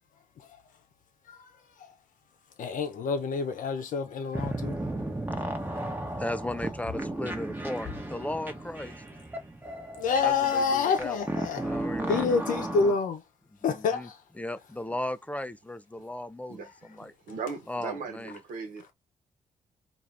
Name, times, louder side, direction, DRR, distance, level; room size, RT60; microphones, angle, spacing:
voice 1, 2.6-4.7 10.0-11.7 12.1-13.2 13.6-14.2, left 5 dB, 70° left, 0.7 m, -28 dB
sound 1, 4.3-12.9, right 1 dB, 15° right, 0.9 m, -35 dB
voice 2, 6.2-8.9 10.2-11.2 11.6-12.3 13.7-14.1 14.4-17.1 17.7-18.3, left 1 dB, 10° left, 0.4 m, -36 dB
Wood, 6.5-8.4 11.0-11.8 12.2-12.3, left 8 dB, 45° left, 1.3 m, -47 dB
voice 3, 17.0-18.9, right 5 dB, 75° right, 1.0 m, -38 dB
2.6 x 2.4 x 3.2 m
supercardioid pair, 50°, 14 cm